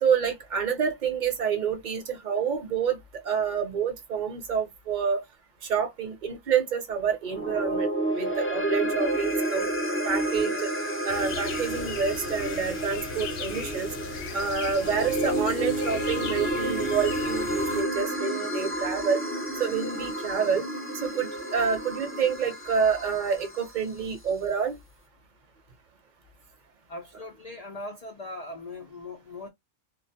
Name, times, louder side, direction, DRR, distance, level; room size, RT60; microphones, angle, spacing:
voice 1, 0.0-5.2 5.6-7.9 8.1-9.7 10.0-10.7 11.0-13.9 14.3-19.2 19.6-20.6 20.9-24.8, right 6 dB, 45° right, 0.7 m, -28 dB
sound 1, 7.2-23.7, right 1 dB, 15° left, 0.5 m, -30 dB
sound 2, 11.1-17.8, left 7 dB, 65° left, 0.7 m, -39 dB
voice 2, 26.9-29.5, left 2 dB, 90° left, 0.3 m, -40 dB
2.3 x 2.1 x 2.6 m
omnidirectional pair, 1.3 m